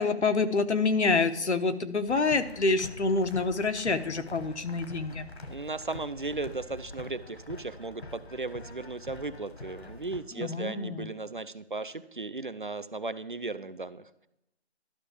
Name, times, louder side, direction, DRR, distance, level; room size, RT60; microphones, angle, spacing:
voice 1, 0.0-5.3 10.4-11.1, left 3 dB, 80° left, 8 dB, 1.1 m, -27 dB
sound 1, 2.1-10.2, left 2 dB, 65° left, 1.4 m, -45 dB
voice 2, 5.5-14.3, right 3 dB, 50° right, 14 dB, 0.4 m, -36 dB
12.0 x 5.7 x 5.0 m, 0.88 s
figure-of-eight pair, 175°, 34 cm